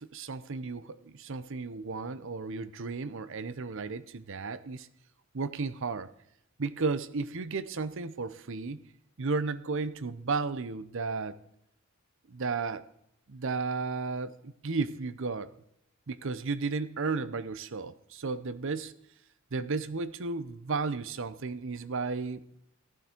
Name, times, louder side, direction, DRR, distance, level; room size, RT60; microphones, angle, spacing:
voice 1, 0.0-4.9 5.3-6.1 6.6-8.8 9.2-11.4 12.3-12.8 13.3-15.5 16.1-18.9 19.5-22.4, right 4 dB, 65° right, 15 dB, 0.7 m, -34 dB
14.5 x 12.0 x 4.5 m, 0.75 s
head